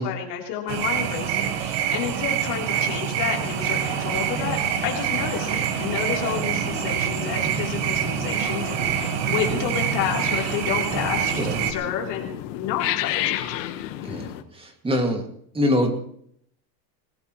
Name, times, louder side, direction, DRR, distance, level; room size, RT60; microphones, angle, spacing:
voice 1, 0.0-4.6 4.8-9.0 9.3-13.6, left 9 dB, 50° left, -1 dB, 3.9 m, -30 dB
sound 1, 0.7-11.7, right 9 dB, 55° right, 1.8 m, -26 dB
sound 2, 3.4-14.4, left 13 dB, 75° left, 1.7 m, -34 dB
voice 2, 14.0-15.2 15.5-15.9, left 1 dB, 10° right, 4 dB, 2.4 m, -24 dB
20.5 x 19.5 x 3.2 m, 0.68 s
supercardioid pair, 140°, 50 cm